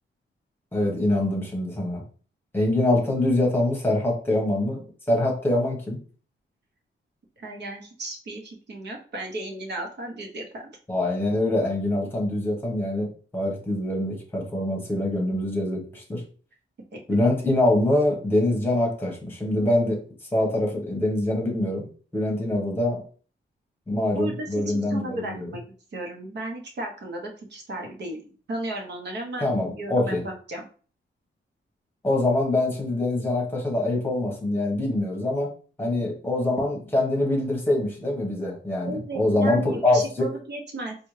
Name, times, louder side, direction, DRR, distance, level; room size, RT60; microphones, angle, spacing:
voice 1, 0.7-2.0 2.5-6.0 10.9-13.1 13.3-16.2 17.1-20.0 20.3-21.9 22.1-23.0 23.9-25.5 29.4-30.2 32.0-35.5 35.8-40.3, left 1 dB, 10° left, -1 dB, 1.1 m, -24 dB
voice 2, 7.4-10.8 16.9-17.0 24.1-25.6 25.9-30.7 38.8-41.0, right 1 dB, 60° right, 2 dB, 1.0 m, -35 dB
4.2 x 2.3 x 3.2 m, 0.40 s
wide cardioid pair, 170°, 20 cm